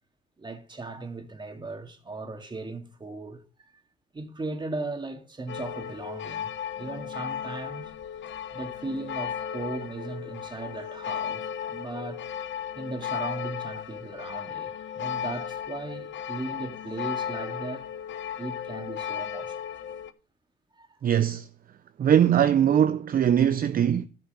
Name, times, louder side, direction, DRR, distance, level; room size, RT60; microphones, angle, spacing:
voice 1, 0.4-3.7 4.1-7.9 8.5-12.3 12.8-17.9 18.4-19.6 20.8-21.0 22.9-23.0, right 2 dB, 25° right, 2.2 m, -37 dB
sound 1, 5.5-20.1, left 9 dB, 70° left, 1.0 m, -35 dB
voice 2, 21.0-21.5 22.0-24.1, right 9 dB, 45° right, 0.6 m, -21 dB
11.5 x 5.6 x 6.9 m
cardioid pair, 90°, 20 cm